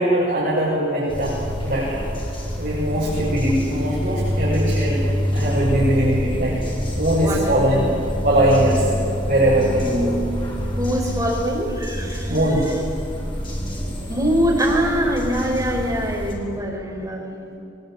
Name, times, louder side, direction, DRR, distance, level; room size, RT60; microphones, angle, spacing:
voice 1, 0.0-1.4 1.6-2.1 2.6-5.0 5.3-6.6 7.0-7.9 8.2-8.9 9.3-10.1 12.3-12.7, right 1 dB, 50° right, -7 dB, 6.5 m, -20 dB
sound 1, 1.1-16.3, equal, 30° left, 5.2 m, -26 dB
voice 2, 7.2-7.6 9.8-10.2 10.7-12.4 12.7-12.8 13.7-17.5, equal, 20° right, -2 dB, 5.3 m, -24 dB
23.0 x 21.0 x 9.1 m, 2.6 s
head